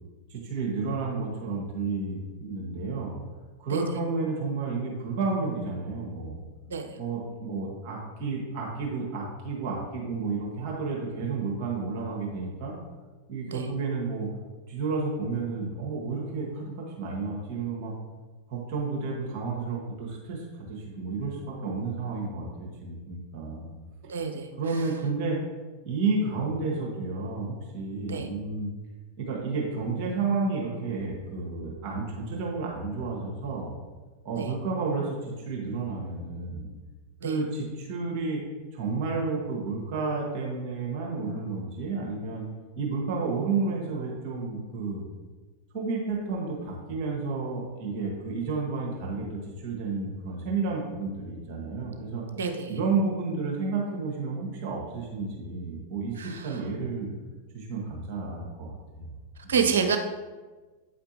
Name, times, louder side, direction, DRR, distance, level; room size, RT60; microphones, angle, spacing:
voice 1, 0.3-3.1 3.6-6.4 7.0-12.7 13.3-14.3 14.7-17.9 18.5-23.7 24.6-25.4 25.8-28.7 29.2-33.7 34.2-36.7 37.2-38.4 38.7-42.5 42.8-45.0 45.7-52.2 52.7-57.1 57.5-59.2 59.4-59.5, right 4 dB, 45° right, -2 dB, 1.4 m, -31 dB
voice 2, 24.1-24.5 28.1-28.3 34.4-34.5 37.2-37.4 52.3-52.7 56.2-56.6 59.5-60.0, right 6 dB, 65° right, 6 dB, 0.7 m, -28 dB
8.3 x 5.1 x 2.9 m, 1.3 s
figure-of-eight pair, 90°, 0 cm